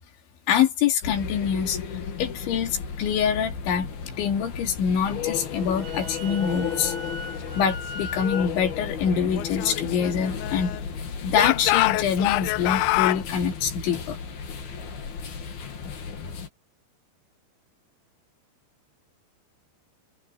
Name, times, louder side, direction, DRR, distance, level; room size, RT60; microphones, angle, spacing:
voice 1, 0.5-1.8 2.2-7.0 7.5-10.7 11.2-14.2, left 7 dB, 65° left, 4.9 m, -25 dB
sound 1, 1.0-16.5, left 6 dB, 50° left, 4.7 m, -34 dB
Wind instrument woodwind instrument, 5.6-8.5, left 3 dB, 70° right, 7.9 m, -38 dB
Speech / Shout, 9.3-10.9 11.3-13.2, left 20 dB, 85° left, 2.6 m, -25 dB
omnidirectional pair, 5.9 m